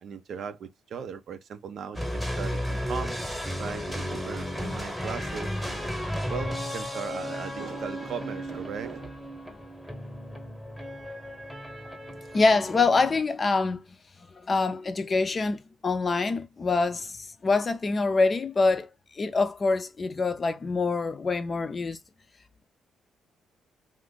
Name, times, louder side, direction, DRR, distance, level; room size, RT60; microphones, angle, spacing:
voice 1, 0.0-3.2 3.6-5.9 6.3-9.2, right 7 dB, 65° right, 0.5 m, -38 dB
sound 1, 1.9-13.2, equal, ahead, 1.0 m, -34 dB
voice 2, 12.3-13.8 14.4-22.0, left 3 dB, 35° left, 0.5 m, -25 dB
2.5 x 2.5 x 3.6 m
cardioid pair, 90°, 0 cm